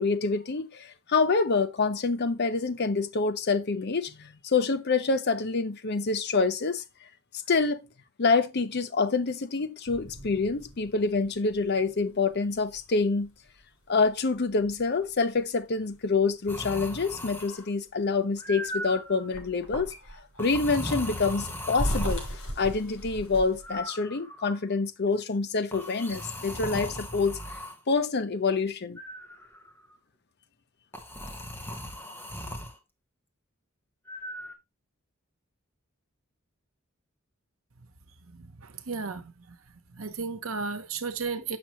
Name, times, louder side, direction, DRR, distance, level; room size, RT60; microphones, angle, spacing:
voice 1, 0.0-6.8 7.5-7.8 8.2-13.3 13.9-19.9 20.4-22.2 22.6-27.6 27.9-29.0, left 4 dB, 55° left, 0.7 m, -26 dB
sound 1, 9.9-17.7 18.1-23.8, equal, 85° left, 3.5 m, -39 dB
sound 2, 16.5-17.7 18.4-19.3 20.4-22.3 23.6-24.6 25.7-27.8 29.0-29.7 30.9-32.8 34.1-34.5, equal, 10° left, 1.2 m, -38 dB
voice 2, 38.2-39.6 39.9-41.6, right 4 dB, 85° right, 1.0 m, -34 dB
7.4 x 6.0 x 3.0 m
head